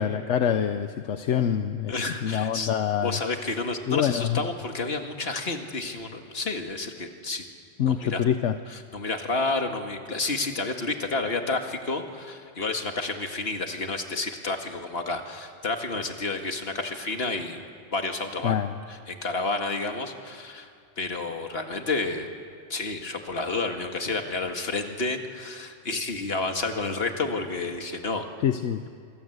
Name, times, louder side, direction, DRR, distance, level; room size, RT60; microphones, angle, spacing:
voice 1, 0.0-1.9 2.2-3.2 3.9-4.4 7.8-8.6 18.4-18.7 28.4-28.9, left 9 dB, 80° left, 9 dB, 1.1 m, -25 dB
voice 2, 1.9-2.7 3.0-7.5 7.9-8.2 8.7-17.6 17.9-18.5 18.9-20.7 21.0-22.3 22.7-28.3, left 3 dB, 55° left, 4 dB, 2.2 m, -30 dB
26.0 x 23.5 x 8.1 m, 2.2 s
omnidirectional pair, 1.2 m